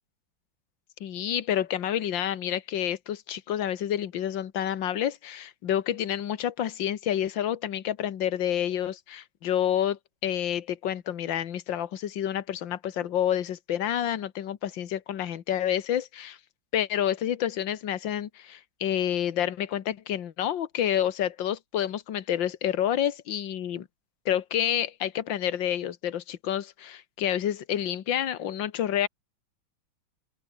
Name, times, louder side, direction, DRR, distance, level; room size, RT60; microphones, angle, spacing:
voice 1, 1.0-16.4 16.7-23.9 24.3-29.1, left 10 dB, 65° left, 2.0 m, -29 dB
open air
omnidirectional pair, 2.2 m